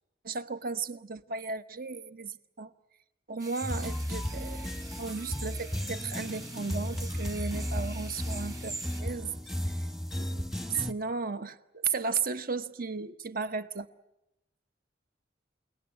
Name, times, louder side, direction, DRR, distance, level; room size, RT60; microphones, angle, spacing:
voice 1, 0.2-2.7 3.3-4.7 5.0-9.8 10.1-13.9, right 5 dB, 50° right, 1.1 m, -35 dB
sound 1, 3.4-9.0, right 3 dB, 20° right, 2.0 m, -45 dB
sound 2, 3.6-10.9, equal, ahead, 1.0 m, -34 dB
29.0 x 18.5 x 9.9 m
head